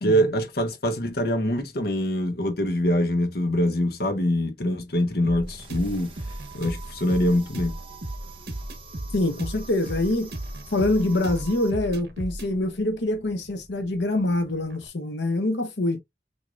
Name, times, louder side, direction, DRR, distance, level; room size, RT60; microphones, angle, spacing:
voice 1, 0.0-6.1 6.5-7.8, equal, 60° left, 1.1 m, -24 dB
sound 1, 5.2-14.9, right 1 dB, 60° right, 1.1 m, -36 dB
sound 2, 5.4-11.7, right 6 dB, 30° right, 1.2 m, -46 dB
voice 2, 9.1-10.3 10.7-16.0, left 2 dB, 85° left, 0.9 m, -25 dB
6.2 x 2.9 x 2.5 m
head